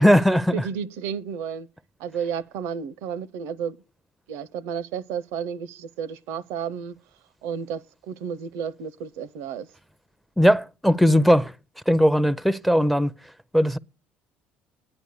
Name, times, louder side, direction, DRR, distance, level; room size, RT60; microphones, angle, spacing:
voice 1, 0.0-0.5 10.4-11.5 11.9-13.1 13.5-13.8, equal, ahead, 0.5 m, -18 dB
voice 2, 0.5-1.7 2.0-3.8 4.3-7.0 7.4-9.7, right 7 dB, 80° right, 0.5 m, -32 dB
9.6 x 9.2 x 6.7 m
supercardioid pair, 75°, 5 cm